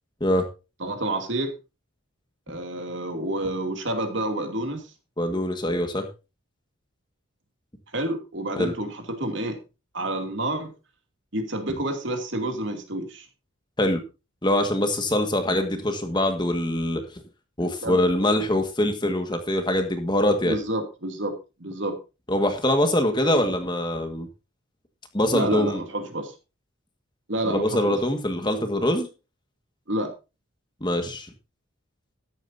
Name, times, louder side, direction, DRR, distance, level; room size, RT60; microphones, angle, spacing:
voice 1, 0.8-1.5 2.5-4.8 7.9-9.6 9.9-10.7 11.3-13.3 17.6-18.3 20.4-21.3 21.6-22.0 25.3-26.3 27.3-28.0 29.9-30.1, right 1 dB, 55° right, 5 dB, 2.7 m, -29 dB
voice 2, 5.2-6.1 8.6-8.7 13.8-14.0 14.4-17.0 17.6-20.6 22.3-24.3 25.1-25.8 27.5-29.1 30.8-31.3, left 1 dB, 20° left, 6 dB, 1.7 m, -23 dB
13.5 x 11.5 x 2.7 m, 0.29 s
head